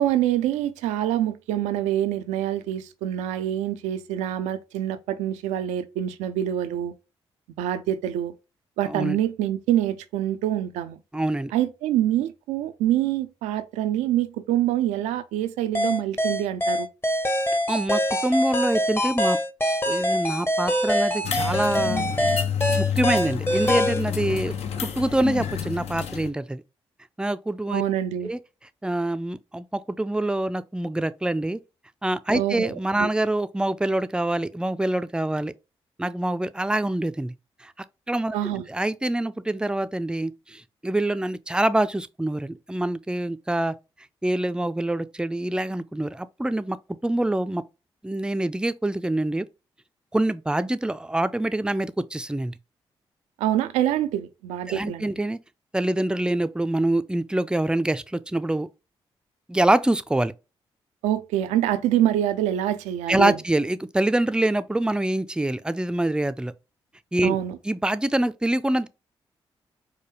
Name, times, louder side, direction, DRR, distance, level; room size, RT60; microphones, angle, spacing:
voice 1, 0.0-6.9 7.6-8.3 8.8-11.0 11.5-16.9 27.7-28.3 32.3-33.1 38.3-38.6 53.4-55.1 61.0-63.4 67.2-67.6, right 12 dB, 85° right, 0.4 m, -25 dB
voice 2, 8.8-9.2 11.1-11.5 17.7-19.4 19.9-22.0 22.7-24.6 25.0-26.6 27.2-27.8 28.2-28.4 28.8-31.6 32.0-35.5 36.0-37.3 37.6-37.7 38.1-43.8 44.2-46.8 47.0-47.6 48.0-49.5 50.1-52.5 54.7-55.4 55.7-58.7 59.5-60.3 63.1-66.5 67.1-67.4 67.6-68.9, right 1 dB, 5° right, 0.4 m, -25 dB
sound 1, 15.8-24.0, equal, 20° left, 0.8 m, -24 dB
sound 2, 21.2-26.3, left 8 dB, 65° left, 0.6 m, -29 dB
4.8 x 2.2 x 3.0 m
hypercardioid pair, 40°, 12 cm